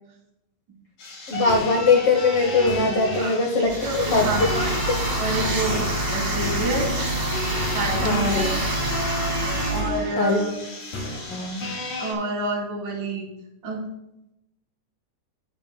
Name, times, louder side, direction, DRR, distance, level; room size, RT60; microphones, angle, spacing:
sound 1, 1.0-12.1, left 2 dB, 80° left, 3.8 m, -32 dB
voice 1, 1.3-3.7 4.1-4.3 8.0-8.4 10.2-10.4 11.3-11.7, left 3 dB, 65° left, 2 dB, 1.6 m, -21 dB
voice 2, 3.6-4.8 5.2-7.0 7.7-8.6 9.7-10.5 12.0-13.3 13.6-13.8, right 2 dB, 40° right, -4 dB, 2.8 m, -28 dB
sound 2, 3.7-9.8, right 1 dB, 70° right, 0.4 m, -26 dB
20.0 x 6.9 x 2.2 m, 0.86 s
omnidirectional pair, 3.5 m